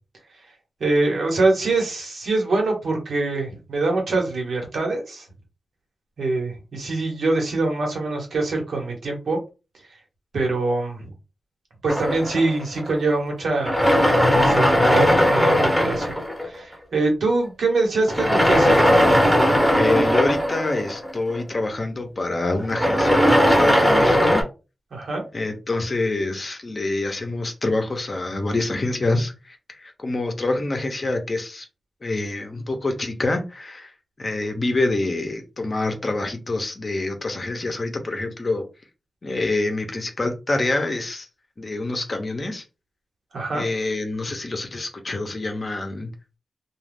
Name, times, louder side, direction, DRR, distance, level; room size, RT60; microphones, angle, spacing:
voice 1, 0.8-5.3 6.2-9.4 10.3-11.1 11.8-13.8 14.4-16.1 16.4-18.8 24.9-25.2 43.3-43.6, right 3 dB, 80° right, 1.1 m, -24 dB
sound 1, 11.9-13.1 13.6-16.7 18.1-21.5 22.6-24.4, equal, 5° left, 0.8 m, -18 dB
voice 2, 19.7-24.4 25.3-31.7 32.0-33.9 34.2-38.7 39.2-41.3 41.6-42.6 43.5-46.1, left 2 dB, 35° left, 0.6 m, -26 dB
2.4 x 2.3 x 3.3 m
wide cardioid pair, 145°, 0 cm